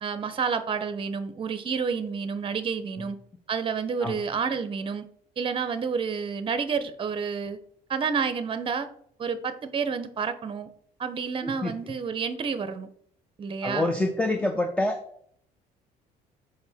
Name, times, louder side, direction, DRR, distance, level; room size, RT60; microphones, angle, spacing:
voice 1, 0.0-3.2 3.5-5.0 5.4-7.6 7.9-8.9 9.2-10.7 11.0-12.9 13.4-14.0, right 6 dB, 30° right, 11 dB, 0.7 m, -29 dB
voice 2, 11.4-11.7 13.6-15.0, left 2 dB, 5° left, 6 dB, 0.5 m, -26 dB
6.3 x 4.7 x 3.5 m, 0.64 s
cardioid pair, 110°, 17 cm